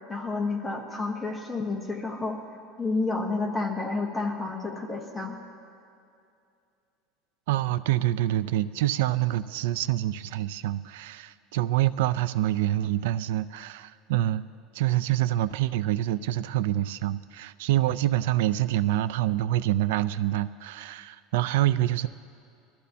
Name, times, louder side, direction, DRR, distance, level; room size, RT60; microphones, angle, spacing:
voice 1, 0.1-2.4 2.8-5.4, left 3 dB, 10° left, 1 dB, 1.1 m, -30 dB
voice 2, 7.5-14.4 14.7-22.1, right 14 dB, 85° right, 16 dB, 0.4 m, -26 dB
21.5 x 13.5 x 2.8 m, 2.5 s
cardioid pair, 160°, 0 cm